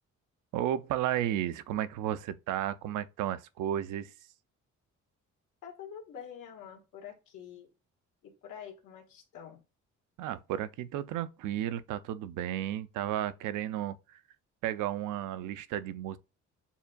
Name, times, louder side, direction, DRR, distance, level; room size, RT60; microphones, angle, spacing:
voice 1, 0.5-4.1 10.2-14.0 14.6-16.2, right 11 dB, 85° right, 0.5 m, -33 dB
voice 2, 5.6-7.7 8.2-9.6, left 8 dB, 85° left, 1.5 m, -46 dB
7.0 x 2.4 x 2.2 m
cardioid pair, 90°, 30 cm